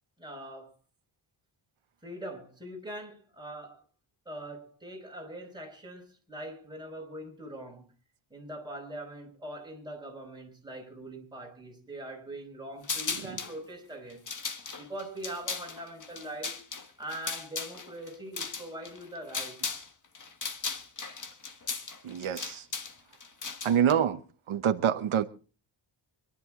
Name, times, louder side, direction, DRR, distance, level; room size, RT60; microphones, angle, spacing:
voice 1, 0.2-0.7 2.0-3.8 4.2-7.9 8.3-14.2 14.8-16.6 17.0-19.6, right 1 dB, 10° right, 4.9 m, -42 dB
sound 1, 12.8-13.6 14.1-19.9 20.1-23.9, left 4 dB, 40° left, 1.5 m, -37 dB
voice 2, 22.0-22.6 23.6-24.2 24.5-25.2, right 9 dB, 85° right, 1.0 m, -26 dB
26.0 x 11.0 x 3.7 m
wide cardioid pair, 155°, 48 cm